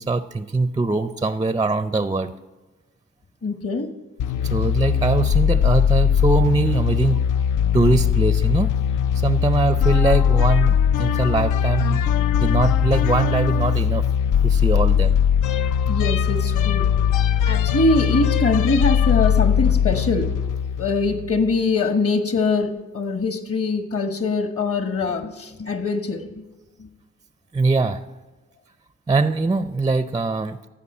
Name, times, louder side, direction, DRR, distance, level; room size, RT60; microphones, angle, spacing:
voice 1, 0.0-2.3 4.5-7.2 7.7-8.7 9.2-12.0 12.4-14.0 14.4-15.2 27.5-28.0 29.1-30.7, right 3 dB, 15° right, 12 dB, 0.4 m, -22 dB
voice 2, 3.4-3.9 15.9-16.9 17.5-20.3 20.8-26.4 26.8-26.9, left 3 dB, 45° left, 8 dB, 1.3 m, -23 dB
sound 1, 4.2-21.5, left 8 dB, 70° left, 0.4 m, -20 dB
14.5 x 5.3 x 4.3 m, 1.2 s
supercardioid pair, 55°, 32 cm